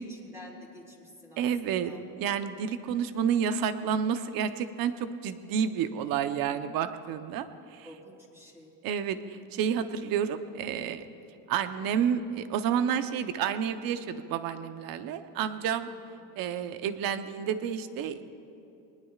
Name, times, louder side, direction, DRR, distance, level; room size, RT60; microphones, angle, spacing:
voice 1, 0.0-2.0 7.8-8.8 15.9-16.3, equal, 5° right, -3 dB, 3.4 m, -50 dB
voice 2, 1.4-1.9 2.2-7.9 8.8-11.0 11.5-15.9 16.4-18.4, right 8 dB, 50° right, 9 dB, 1.0 m, -30 dB
23.5 x 20.0 x 2.5 m, 2.8 s
supercardioid pair, 115°, 43 cm